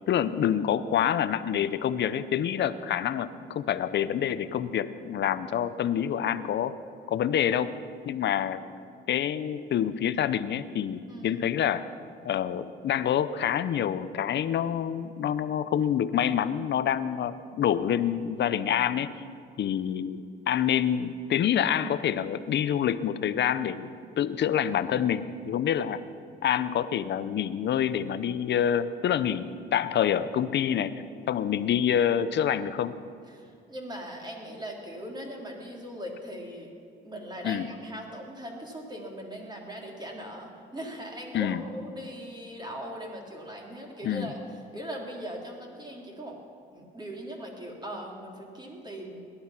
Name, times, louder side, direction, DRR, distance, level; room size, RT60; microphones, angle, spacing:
voice 1, 0.1-6.7 7.1-7.8 8.1-8.6 9.1-11.8 12.2-19.1 19.6-23.9 24.2-26.0 26.4-29.5 29.7-30.9 31.3-33.0 37.4-37.6 41.3-41.6 44.0-44.3, left 9 dB, 60° left, 13 dB, 0.8 m, -27 dB
voice 2, 11.1-11.4 33.3-36.7 37.0-44.4 44.7-46.4 46.7-49.2, equal, 20° right, -1 dB, 3.5 m, -40 dB
18.0 x 11.5 x 5.8 m, 2.5 s
cardioid pair, 90°, 20 cm